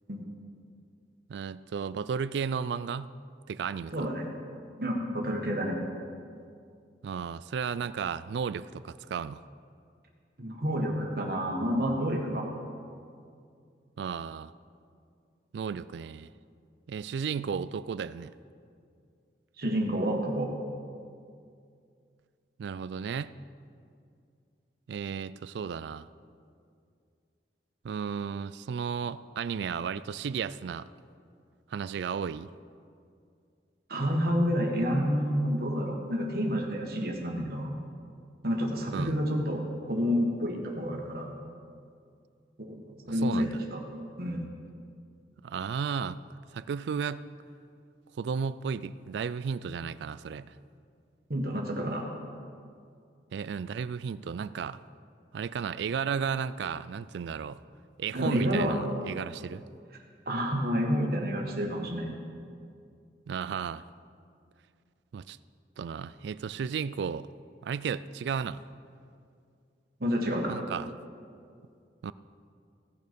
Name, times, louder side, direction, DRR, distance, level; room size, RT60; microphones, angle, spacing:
voice 1, 1.3-3.1 3.5-4.1 7.0-9.4 14.0-14.5 15.5-16.3 16.9-18.3 22.6-23.3 24.9-26.1 27.8-30.9 31.7-32.5 38.9-39.2 43.1-43.6 45.4-46.2 46.5-47.3 48.2-50.6 53.3-54.8 55.3-57.6 58.0-59.6 63.3-63.9 65.1-65.4 65.8-67.3 67.6-68.6 70.5-70.9 72.0-72.1, right 6 dB, 70° right, 16 dB, 0.3 m, -34 dB
voice 2, 3.9-4.3 4.8-5.8 10.4-12.5 19.6-20.5 33.9-37.8 38.4-39.6 39.9-41.3 42.6-42.7 43.1-43.8 44.2-44.4 51.3-52.0 58.1-58.8 60.2-62.1 70.0-70.6, equal, 55° right, 0 dB, 1.5 m, -29 dB
16.0 x 6.5 x 5.2 m, 2.3 s
head